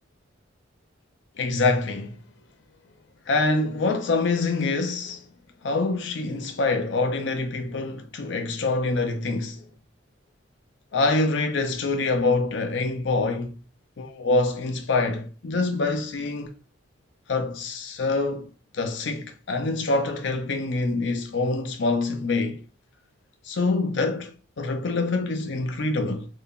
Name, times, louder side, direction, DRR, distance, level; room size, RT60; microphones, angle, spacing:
voice 1, 1.4-2.2 3.3-5.2 5.6-9.6 10.9-13.6 14.0-16.5 17.3-22.6 23.4-26.3, left 3 dB, 65° left, 0.5 m, -25 dB
2.5 x 2.2 x 3.6 m
head